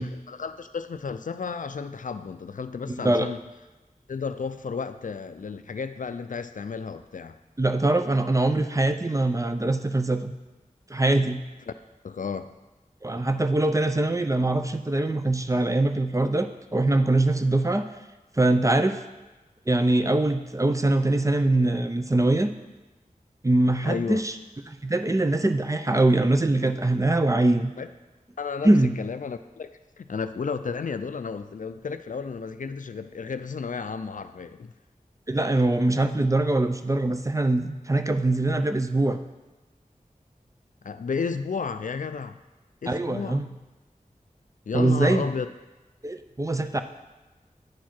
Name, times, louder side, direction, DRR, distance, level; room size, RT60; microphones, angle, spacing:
voice 1, 0.0-3.4 4.1-7.4 12.0-12.5 23.8-24.2 27.8-27.9 28.4-29.7 30.0-34.7 40.8-42.4 42.8-43.5 44.7-45.5, left 5 dB, 65° left, 11 dB, 0.4 m, -33 dB
voice 2, 2.9-3.3 7.6-10.3 10.9-11.4 13.0-17.8 18.4-19.0 19.7-22.5 23.4-24.3 24.7-27.7 28.6-28.9 35.3-39.2 42.9-43.5 44.7-45.3 46.0-46.8, right 2 dB, 20° right, 8 dB, 0.5 m, -23 dB
9.2 x 4.7 x 4.4 m, 1.1 s
wide cardioid pair, 60°, 14 cm